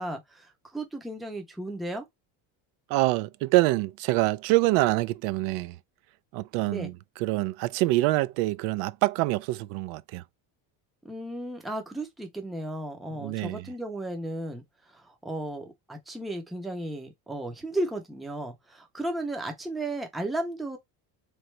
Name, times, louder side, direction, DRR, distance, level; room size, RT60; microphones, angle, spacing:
voice 1, 0.0-2.1 6.7-6.9 11.0-14.6 14.9-20.8, right 1 dB, ahead, 0.4 m, -34 dB
voice 2, 2.9-5.8 6.3-6.9 7.2-10.2 13.2-13.6, right 19 dB, 90° right, 0.5 m, -25 dB
3.9 x 3.2 x 3.2 m
cardioid pair, 150°, 47 cm